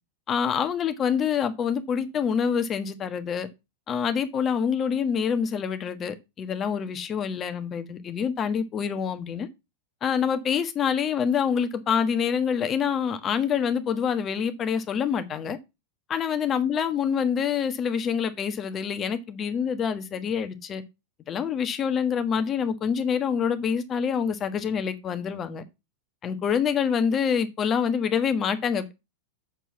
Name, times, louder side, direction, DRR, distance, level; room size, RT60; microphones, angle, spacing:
voice 1, 0.3-3.5 3.9-9.5 10.0-15.6 16.1-20.8 21.3-25.6 26.2-28.9, left 7 dB, 30° left, 1.4 m, -26 dB
7.6 x 4.6 x 7.1 m
figure-of-eight pair, 95°, 0 cm